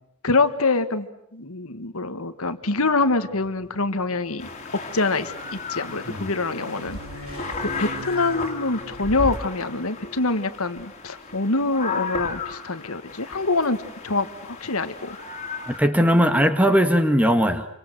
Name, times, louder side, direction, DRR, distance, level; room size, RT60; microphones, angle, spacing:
voice 1, 0.2-4.5 4.9-7.5 7.8-15.2, left 3 dB, 75° left, 10 dB, 1.7 m, -25 dB
sound 1, 2.7-10.3, right 2 dB, 75° right, 3.9 m, -44 dB
sound 2, 4.4-15.8, left 4 dB, 30° left, 3.2 m, -34 dB
voice 2, 15.7-17.7, equal, 5° right, 8 dB, 1.7 m, -19 dB
28.5 x 24.5 x 7.8 m, 0.80 s
head